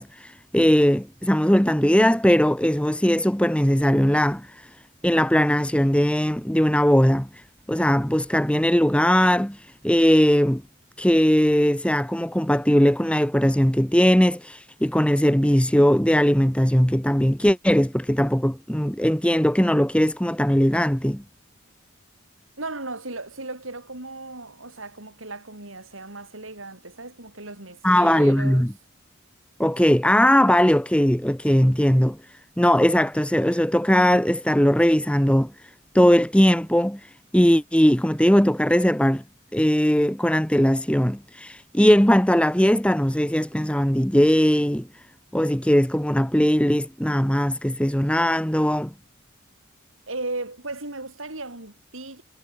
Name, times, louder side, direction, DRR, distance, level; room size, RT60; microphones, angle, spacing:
voice 1, 0.0-4.7 5.0-7.4 7.7-10.6 11.0-21.2 27.8-28.7 29.6-32.2 32.6-35.5 35.9-39.2 39.5-44.9 45.3-48.9, equal, 5° left, 1.5 m, -19 dB
voice 2, 22.6-28.7 50.1-52.2, right 2 dB, 85° right, 7.8 m, -36 dB
head